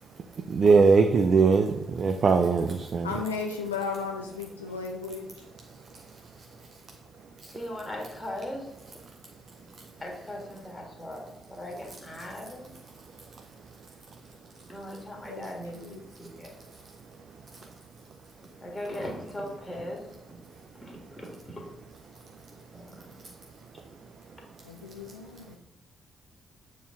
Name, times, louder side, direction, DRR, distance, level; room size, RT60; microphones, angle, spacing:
voice 1, 0.5-3.1, right 4 dB, 45° right, 6 dB, 0.4 m, -21 dB
voice 2, 3.0-5.4 15.3-15.5 15.7-16.0 24.6-25.6, left 5 dB, 85° left, 1 dB, 0.4 m, -35 dB
voice 3, 7.4-8.7 10.0-12.7 14.7-16.5 17.6-17.7 18.4-20.4 20.7-21.7 22.7-23.3, left 1 dB, 15° left, 0 dB, 1.7 m, -39 dB
6.8 x 4.3 x 3.6 m, 0.86 s
figure-of-eight pair, 40°, 0 cm